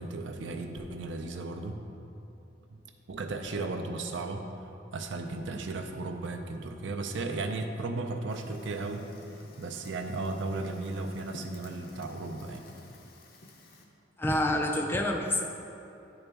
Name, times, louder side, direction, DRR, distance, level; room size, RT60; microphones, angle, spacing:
voice 1, 0.0-1.8 3.1-4.4 4.9-9.1 9.6-12.6, right 3 dB, 70° right, 5 dB, 0.5 m, -35 dB
Fire, 8.3-13.8, left 1 dB, 50° left, 0.6 m, -52 dB
voice 2, 14.2-15.4, left 1 dB, 10° left, 3 dB, 0.3 m, -27 dB
9.8 x 4.0 x 3.4 m, 2.9 s
head